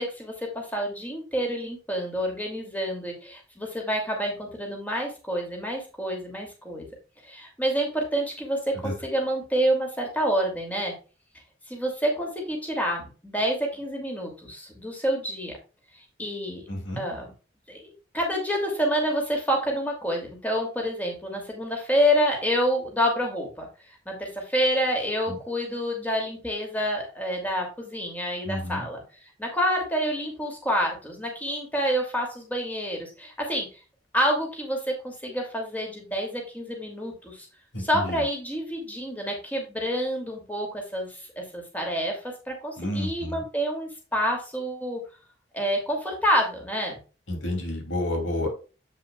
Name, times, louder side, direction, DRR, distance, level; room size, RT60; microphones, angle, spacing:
voice 1, 0.0-6.9 7.2-10.9 11.7-15.6 16.2-16.6 17.0-17.3 17.7-23.7 24.1-33.7 34.1-37.5 37.8-45.0 45.5-47.0, equal, 10° left, 1 dB, 2.6 m, -28 dB
voice 2, 16.7-17.0 28.4-28.9 37.7-38.2 42.8-43.4 47.3-48.5, left 1 dB, 90° left, 2 dB, 2.9 m, -30 dB
8.2 x 7.4 x 2.3 m, 0.33 s
head